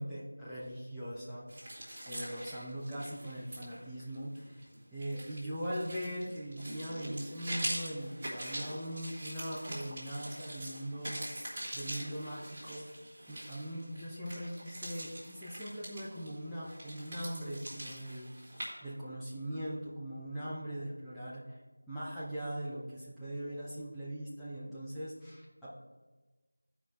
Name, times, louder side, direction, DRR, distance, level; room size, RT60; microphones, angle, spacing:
voice 1, 0.0-1.7 2.1-4.6 4.9-11.4 11.7-12.8 13.3-18.6 18.8-21.6 21.9-25.7, equal, ahead, -15 dB, 0.7 m, -40 dB
sound 1, 1.5-18.7, right 1 dB, 15° right, 1.8 m, -43 dB
13.5 x 4.9 x 4.2 m, 1.3 s
figure-of-eight pair, 170°, 0 cm